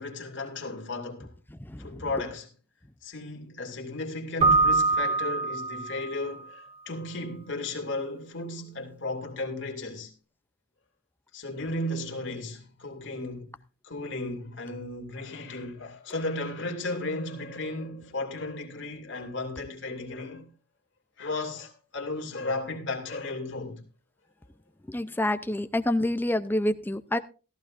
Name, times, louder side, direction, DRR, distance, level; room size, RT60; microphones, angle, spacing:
voice 1, 0.0-1.3 1.8-2.5 3.0-10.1 11.3-13.5 13.8-20.5 21.2-23.8, left 2 dB, 60° left, 2.5 m, -35 dB
Keyboard (musical), 4.4-6.2, right 3 dB, 30° right, 0.7 m, -24 dB
voice 2, 24.9-27.2, left 1 dB, 10° left, 0.5 m, -27 dB
14.5 x 14.5 x 2.5 m
head